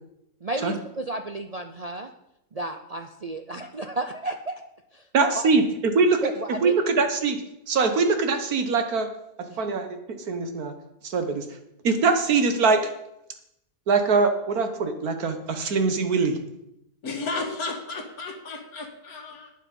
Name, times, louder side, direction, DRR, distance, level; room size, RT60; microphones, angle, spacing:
voice 1, 0.4-2.1 2.5-4.6 4.9-5.0 5.3-5.5 6.2-6.7 9.5-9.8, right 2 dB, 50° right, 5 dB, 0.4 m, -32 dB
voice 2, 5.1-6.3 6.6-7.4 7.7-9.1 9.6-10.0 10.3-10.7 11.0-11.4 11.8-12.8 13.9-16.4, right 4 dB, 80° right, 7 dB, 1.8 m, -22 dB
voice 3, 17.0-19.5, left 3 dB, 75° left, 3 dB, 2.2 m, -33 dB
11.5 x 9.3 x 5.3 m, 0.82 s
omnidirectional pair, 1.6 m